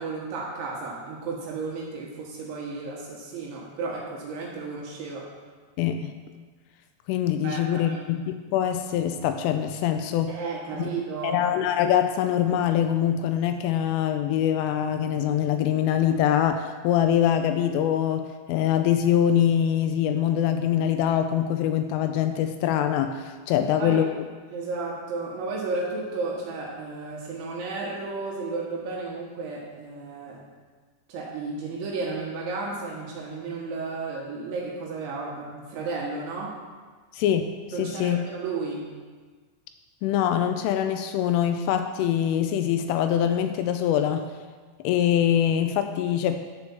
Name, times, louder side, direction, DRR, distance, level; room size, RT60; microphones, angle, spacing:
voice 1, 0.0-5.3 7.4-8.0 10.3-11.4 23.6-24.0 24.5-30.4 31.1-36.6 37.7-38.9, right 3 dB, 70° right, -4 dB, 3.4 m, -33 dB
voice 2, 5.8-6.1 7.1-10.4 10.8-10.9 11.2-24.2 37.1-38.2 40.0-44.3 44.8-46.4, left 10 dB, 85° left, 7 dB, 2.9 m, -24 dB
12.0 x 4.8 x 7.1 m, 1.5 s
omnidirectional pair, 6.0 m